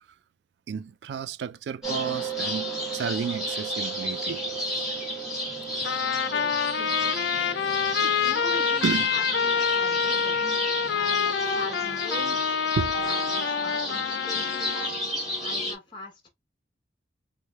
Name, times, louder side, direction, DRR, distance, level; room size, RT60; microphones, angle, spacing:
voice 1, 0.7-5.1 8.8-9.1 12.8-12.9, right 6 dB, 75° right, 0.3 m, -32 dB
sound 1, 1.8-15.7, equal, ahead, 1.4 m, -32 dB
Trumpet, 5.8-14.9, left 6 dB, 85° left, 0.4 m, -27 dB
voice 2, 6.8-7.5 8.0-10.4 10.8-12.5 13.0-14.9 15.4-16.3, left 2 dB, 25° left, 1.0 m, -42 dB
3.2 x 3.1 x 2.2 m
head